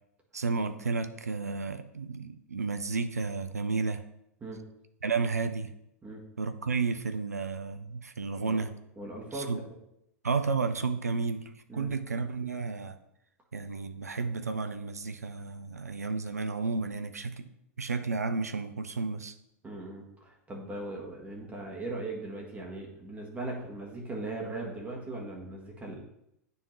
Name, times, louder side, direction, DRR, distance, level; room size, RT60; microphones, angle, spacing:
voice 1, 0.3-4.0 5.0-5.7 6.4-8.7 9.3-9.6 10.2-13.0 13.5-17.5 17.8-19.3, right 4 dB, 80° right, 9 dB, 0.5 m, -32 dB
voice 2, 9.0-9.7 11.7-11.9 19.6-26.0, right 2 dB, 15° right, -1 dB, 1.6 m, -39 dB
9.6 x 3.5 x 3.2 m, 0.81 s
figure-of-eight pair, 95°, 8 cm